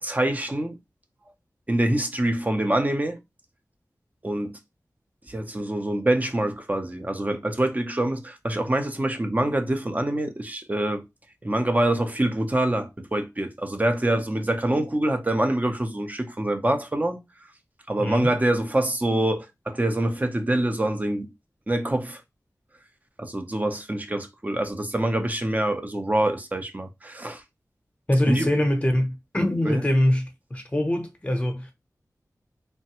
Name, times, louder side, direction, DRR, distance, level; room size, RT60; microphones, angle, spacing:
voice 1, 0.0-0.8 1.7-3.2 4.2-4.6 5.3-11.0 11.4-17.2 17.9-21.3 21.7-22.2 23.2-27.4 28.3-28.5 29.6-29.8, right 1 dB, 25° right, 0.5 m, -25 dB
voice 2, 18.0-18.3 28.1-31.7, left 1 dB, 20° left, 0.7 m, -23 dB
3.1 x 2.1 x 2.8 m
wide cardioid pair, 75°, 7 cm